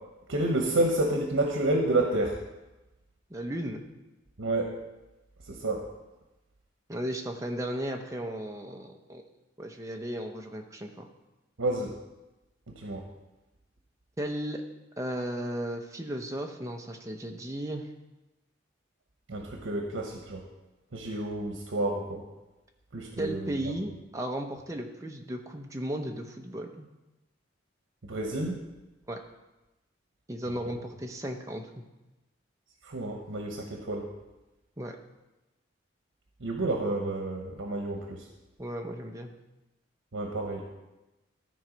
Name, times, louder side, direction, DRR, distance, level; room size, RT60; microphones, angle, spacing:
voice 1, 0.3-2.4 4.4-4.7 5.5-5.8 11.6-11.9 12.8-13.0 19.3-20.4 20.9-22.2 22.9-23.5 28.1-28.6 32.9-34.1 36.4-38.2 40.1-40.7, right 2 dB, 85° right, 2 dB, 0.9 m, -29 dB
voice 2, 3.3-3.8 6.9-9.2 9.6-11.1 14.2-14.6 15.0-17.8 23.2-26.9 29.1-29.2 30.3-31.8 34.8-35.0 38.6-39.3, right 1 dB, 15° right, 3 dB, 0.7 m, -35 dB
12.5 x 4.5 x 5.1 m, 1.0 s
head